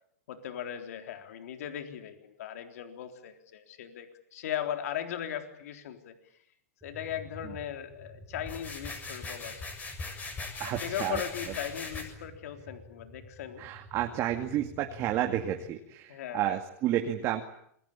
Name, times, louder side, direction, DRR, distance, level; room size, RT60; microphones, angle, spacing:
voice 1, 0.3-6.1 6.8-9.7 10.6-13.6 16.1-16.6, left 10 dB, 70° left, 6 dB, 3.8 m, -38 dB
sound 1, 6.8-15.7, equal, 10° right, 6.4 m, -50 dB
sound 2, 8.4-12.0, left 3 dB, 20° left, 6.9 m, -40 dB
voice 2, 10.6-11.2 13.6-17.4, right 12 dB, 35° right, 4 dB, 2.3 m, -31 dB
27.5 x 23.0 x 8.7 m, 0.73 s
hypercardioid pair, 135°, 8 cm